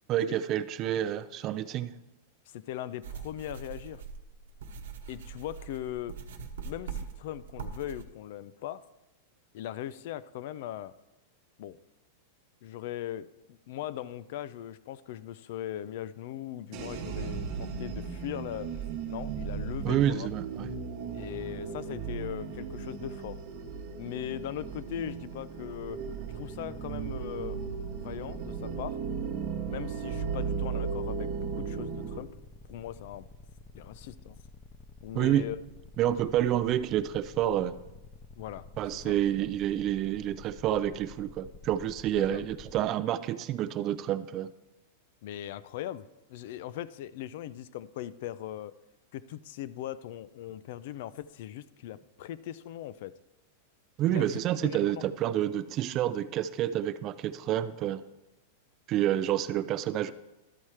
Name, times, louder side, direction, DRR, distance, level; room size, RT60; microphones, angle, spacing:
voice 1, 0.1-1.9 19.8-20.7 35.1-35.5 36.0-37.8 38.8-44.5 54.0-58.0 58.9-60.1, right 12 dB, 35° right, 13 dB, 0.3 m, -28 dB
voice 2, 2.5-4.0 5.1-6.2 6.6-8.8 9.5-10.9 11.6-11.8 12.6-18.7 19.1-20.3 21.1-23.4 24.0-26.0 26.3-27.6 28.0-29.0 29.7-32.3 32.7-33.3 33.7-34.4 35.0-35.6 38.4-38.7 38.9-39.2 42.2-42.4 45.2-48.7 49.1-53.1 54.1-55.0, left 12 dB, 60° left, 16 dB, 0.3 m, -39 dB
sound 1, 3.0-8.0, right 6 dB, 85° right, 0.9 m, -42 dB
sound 2, 16.7-32.2, right 6 dB, 50° right, 1.0 m, -36 dB
sound 3, 25.7-42.8, left 2 dB, 15° left, 0.6 m, -50 dB
12.5 x 4.3 x 4.8 m, 0.97 s
supercardioid pair, 150°, 0 cm